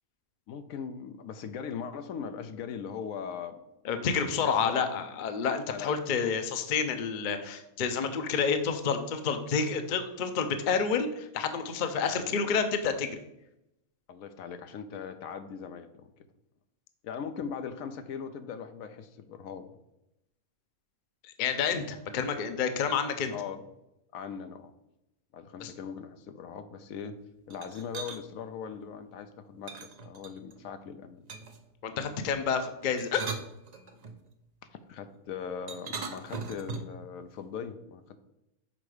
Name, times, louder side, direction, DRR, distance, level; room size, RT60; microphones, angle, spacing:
voice 1, 0.5-3.7 4.4-4.9 5.7-5.9 12.1-12.3 14.1-16.1 17.0-19.7 22.2-22.4 23.3-23.6 24.1-24.7 25.3-27.2 27.5-31.3 34.9-38.2, left 7 dB, 80° left, 10 dB, 1.0 m, -40 dB
voice 2, 3.8-13.1 21.2-23.3 25.6-25.7 31.8-33.2, left 6 dB, 50° left, 8 dB, 0.6 m, -29 dB
sound 1, 27.5-28.2 29.7-30.6 31.3-31.7 32.8-34.2 35.7-37.0, right 4 dB, 45° right, 0.5 m, -39 dB
6.2 x 4.6 x 4.9 m, 0.87 s
omnidirectional pair, 1.5 m